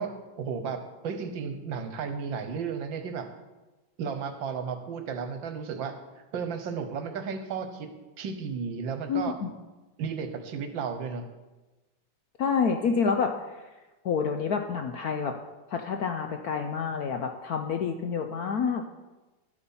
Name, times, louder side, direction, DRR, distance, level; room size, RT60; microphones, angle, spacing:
voice 1, 0.0-3.3 4.0-5.9 6.3-7.9 8.2-9.4 10.0-11.2, right 6 dB, 65° right, 7 dB, 1.6 m, -33 dB
voice 2, 9.1-9.5 12.4-13.3 14.0-15.3 15.7-18.9, left 6 dB, 65° left, 5 dB, 1.0 m, -28 dB
11.5 x 8.4 x 5.5 m, 1.1 s
omnidirectional pair, 2.3 m